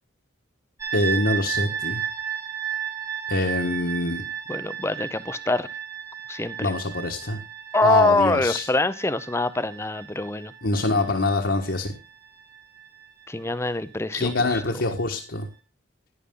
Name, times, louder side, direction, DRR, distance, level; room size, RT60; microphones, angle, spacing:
sound 1, 0.8-13.6, right 9 dB, 15° right, 1.5 m, -34 dB
voice 1, 0.9-2.0 3.3-4.2 6.6-7.4 7.8-8.6 10.6-12.0 14.1-15.5, left 2 dB, 65° left, 1 dB, 1.5 m, -24 dB
voice 2, 4.5-5.7 6.3-6.7 7.7-10.5 13.3-14.8, left 2 dB, 15° left, 14 dB, 0.7 m, -24 dB
11.0 x 10.0 x 3.8 m, 0.30 s
head